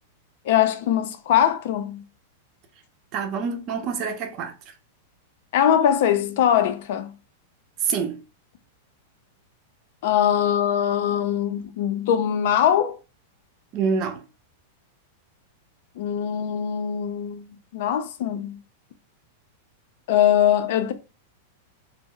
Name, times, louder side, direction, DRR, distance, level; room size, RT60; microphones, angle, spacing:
voice 1, 0.4-2.0 5.5-7.1 10.0-13.0 16.0-17.4 17.7-18.6 20.1-20.9, left 9 dB, 65° left, 0.4 m, -22 dB
voice 2, 3.1-4.5 7.8-8.2 13.7-14.2, right 6 dB, 45° right, 0.6 m, -26 dB
2.1 x 2.0 x 3.6 m
hypercardioid pair, 115°, 0 cm